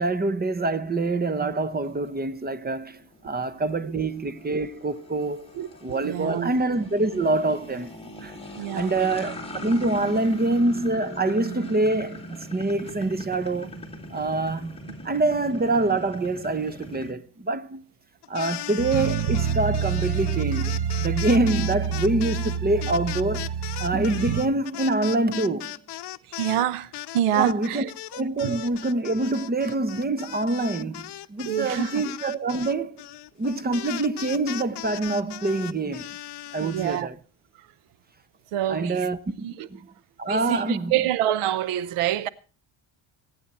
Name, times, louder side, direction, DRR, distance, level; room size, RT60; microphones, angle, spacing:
voice 1, 0.0-5.5 5.8-8.3 8.7-12.2 12.5-13.7 14.1-17.8 18.3-23.5 23.8-25.8 27.3-33.0 33.4-36.1 36.5-37.2 38.7-39.4 39.7-39.9 40.2-41.0, right 2 dB, 20° right, 1.0 m, -25 dB
sound 1, 1.0-17.1, equal, 10° left, 2.6 m, -41 dB
voice 2, 5.5-6.5 8.5-8.9 26.3-27.8 28.4-28.6 31.4-32.0 36.6-37.1 38.5-39.1 39.4-39.7 40.3-42.3, right 11 dB, 90° right, 0.9 m, -27 dB
sound 2, 18.2-26.6 26.9-37.0, left 13 dB, 55° left, 0.8 m, -38 dB
sound 3, 18.8-24.4, right 7 dB, 50° right, 1.7 m, -27 dB
22.5 x 9.1 x 4.3 m
cardioid pair, 100°, 49 cm